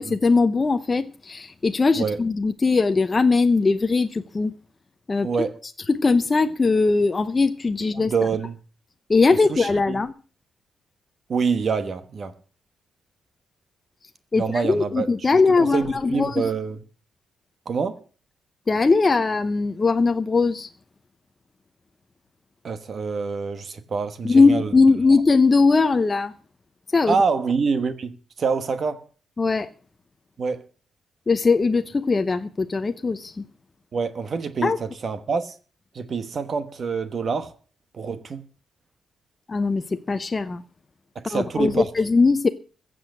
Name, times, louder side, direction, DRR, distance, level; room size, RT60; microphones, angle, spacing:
voice 1, 0.0-4.5 5.1-5.3 5.9-8.1 9.1-10.1 14.3-16.5 18.7-20.7 24.2-26.3 26.9-27.2 29.4-29.7 31.3-33.5 34.6-34.8 39.5-40.6 41.3-42.5, left 4 dB, 20° left, 0.7 m, -20 dB
voice 2, 5.2-5.6 7.9-8.6 9.3-10.0 11.3-12.4 14.3-15.1 15.6-16.8 17.6-18.0 22.6-24.7 27.1-29.0 30.4-30.6 33.9-35.6 35.9-37.5 37.9-38.5 41.1-41.9, right 5 dB, 40° right, 1.1 m, -26 dB
15.5 x 7.8 x 6.5 m
wide cardioid pair, 160°, 0 cm